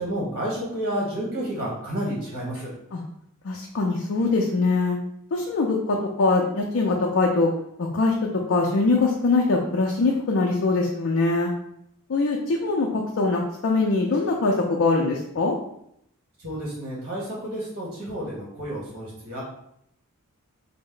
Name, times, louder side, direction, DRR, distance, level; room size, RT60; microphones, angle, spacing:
voice 1, 0.0-2.7 16.4-19.4, right 1 dB, 45° right, -6 dB, 1.4 m, -30 dB
voice 2, 3.4-5.0 5.3-7.5 7.8-8.1 8.5-11.5 12.1-15.5, left 3 dB, 60° left, 0 dB, 0.4 m, -22 dB
4.2 x 2.0 x 3.7 m, 0.75 s
head